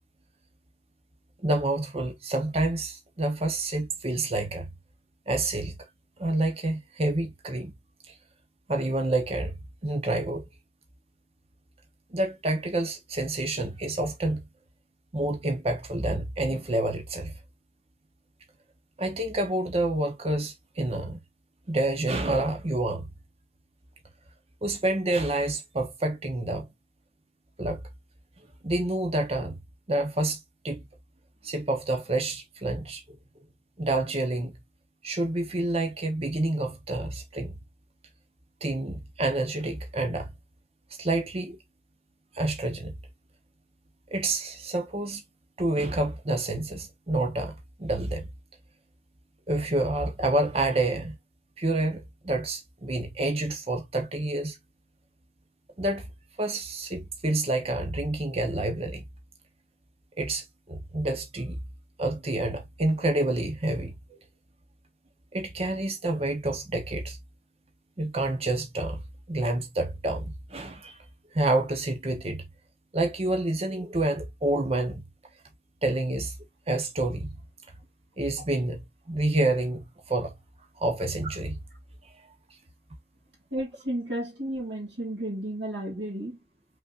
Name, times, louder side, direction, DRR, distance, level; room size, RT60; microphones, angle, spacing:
voice 1, 1.4-4.7 5.3-5.8 6.2-7.7 8.1-8.2 8.7-9.6 9.8-10.4 12.1-14.4 15.1-17.3 19.0-21.2 21.7-23.1 24.6-26.7 27.6-27.8 28.6-29.6 29.9-30.8 31.4-33.0 33.8-34.6 35.0-37.5 38.6-40.3 41.0-41.6 42.3-42.9 44.1-45.2 45.6-48.3 49.5-51.2 51.6-54.6 55.8-56.1 56.4-59.0 60.2-61.6 62.0-64.2 65.3-67.2 68.0-69.0 69.3-71.0 71.3-72.4 72.9-75.0 75.8-76.3 76.7-77.3 78.2-78.8 79.1-80.3 80.8-81.6, right 2 dB, 35° right, 0.8 m, -28 dB
voice 2, 83.5-86.4, right 1 dB, 90° right, 2.4 m, -33 dB
5.5 x 3.9 x 2.4 m
head